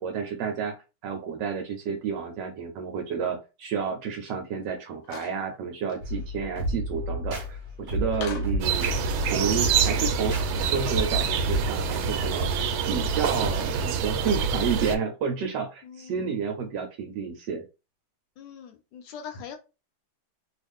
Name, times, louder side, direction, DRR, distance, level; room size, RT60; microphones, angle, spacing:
voice 1, 0.0-8.9 9.3-17.6, right 6 dB, 75° right, 4 dB, 1.2 m, -31 dB
rotary phone, 5.0-5.4 5.9-6.0 8.1-8.6, left 6 dB, 90° left, 0.7 m, -38 dB
sound 1, 6.0-11.7, equal, 45° right, 0.8 m, -31 dB
sound 2, 8.6-15.0, right 6 dB, 90° right, 1.4 m, -26 dB
voice 2, 9.8-10.4 15.8-16.4 18.4-19.6, left 7 dB, 70° left, 5 dB, 1.2 m, -43 dB
3.1 x 2.4 x 3.4 m, 0.29 s
omnidirectional pair, 2.1 m